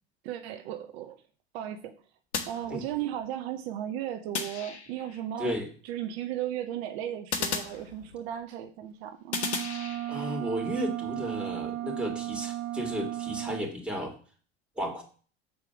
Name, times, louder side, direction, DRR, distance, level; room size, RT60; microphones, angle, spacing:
voice 1, 0.2-1.2 1.5-2.0 2.5-5.6 5.8-9.4, right 11 dB, 65° right, 7 dB, 0.9 m, -35 dB
sound 1, 2.3-3.3 4.3-5.2 7.3-8.4 9.3-10.4, left 5 dB, 90° left, 1.2 m, -35 dB
sound 2, 9.3-13.7, right 14 dB, 40° right, 0.5 m, -35 dB
voice 2, 10.1-14.1 14.8-15.0, equal, 5° right, 0 dB, 3.0 m, -33 dB
6.8 x 4.8 x 6.0 m, 0.41 s
hypercardioid pair, 80°, 33 cm